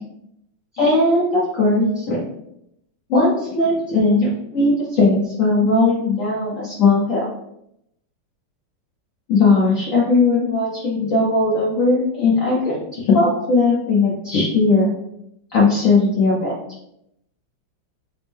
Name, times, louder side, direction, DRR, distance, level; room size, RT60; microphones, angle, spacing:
voice 1, 0.8-2.2 3.1-7.2 9.3-14.9 15.5-16.5, left 3 dB, 75° left, -6 dB, 0.7 m, -18 dB
4.4 x 2.0 x 3.5 m, 0.78 s
omnidirectional pair, 2.4 m